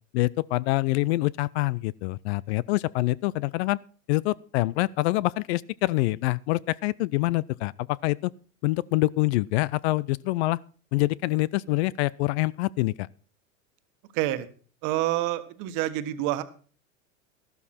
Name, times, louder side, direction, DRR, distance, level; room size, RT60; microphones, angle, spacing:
voice 1, 0.1-3.8 4.1-8.3 8.6-10.6 10.9-13.1, left 19 dB, 55° left, 0.5 m, -25 dB
voice 2, 14.1-14.5 14.8-16.4, right 14 dB, 50° right, 1.5 m, -27 dB
12.5 x 12.5 x 4.3 m
hypercardioid pair, 120°, 41 cm